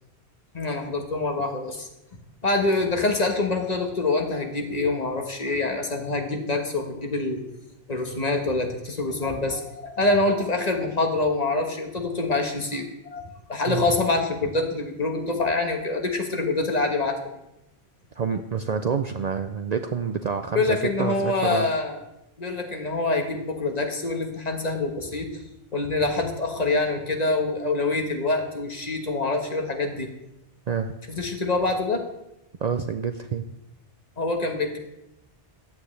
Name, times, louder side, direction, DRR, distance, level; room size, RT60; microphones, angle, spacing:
voice 1, 0.5-1.9 2.4-7.4 7.9-13.2 13.5-17.2 20.5-22.0 22.4-25.4 25.7-30.1 31.1-32.0 34.2-34.8, left 3 dB, 40° left, 3 dB, 1.4 m, -25 dB
voice 2, 18.2-21.7 30.7-30.9 32.6-33.4, right 6 dB, 50° right, 7 dB, 0.5 m, -27 dB
14.5 x 9.3 x 3.3 m, 0.87 s
omnidirectional pair, 1.0 m